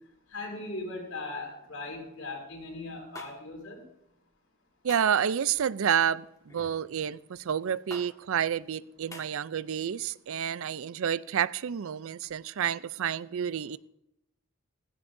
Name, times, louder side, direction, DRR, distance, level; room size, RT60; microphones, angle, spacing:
voice 1, 0.3-3.8, left 2 dB, 75° left, 5.5 m, -39 dB
sound 1, 3.1-3.3 4.9-5.2 6.5-6.8 7.9-8.1 9.1-9.3, left 2 dB, 15° left, 1.6 m, -44 dB
voice 2, 4.8-13.8, right 8 dB, 65° right, 0.4 m, -29 dB
16.5 x 16.0 x 2.6 m
head